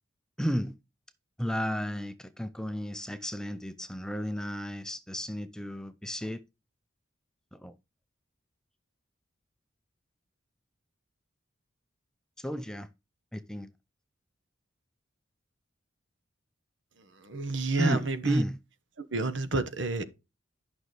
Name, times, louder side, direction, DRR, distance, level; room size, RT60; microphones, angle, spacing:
voice 1, 0.4-0.8 1.4-6.4 7.5-7.7 12.4-12.9 13.3-13.7 17.8-18.6, equal, 5° left, 0.5 m, -33 dB
voice 2, 17.0-18.4 19.0-20.0, right 3 dB, 65° right, 1.1 m, -30 dB
11.5 x 6.1 x 3.2 m
head